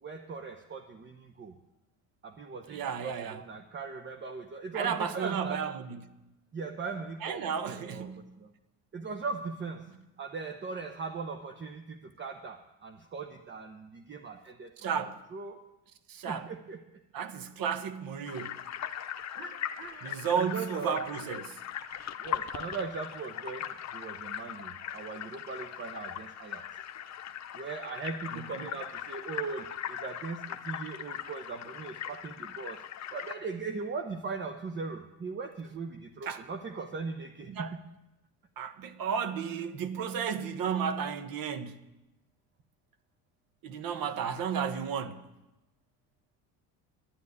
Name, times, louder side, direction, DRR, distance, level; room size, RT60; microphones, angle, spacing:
voice 1, 0.0-1.5 2.2-5.6 6.5-8.5 8.9-9.9 10.2-14.9 15.3-15.6 16.3-16.8 19.4-21.0 22.2-26.8 27.5-32.8 33.1-37.8, right 4 dB, 25° right, 0.9 m, -39 dB
voice 2, 2.7-3.5 4.7-6.2 7.2-8.2 14.8-15.2 16.1-16.5 17.1-18.6 20.0-21.6 28.3-28.7 36.2-36.4 37.5-37.7 38.6-41.9 43.6-45.3, right 7 dB, 55° right, 1.3 m, -33 dB
sound 1, 18.3-33.3, left 10 dB, 40° left, 0.9 m, -40 dB
11.0 x 9.5 x 9.8 m
cardioid pair, 120°, 42 cm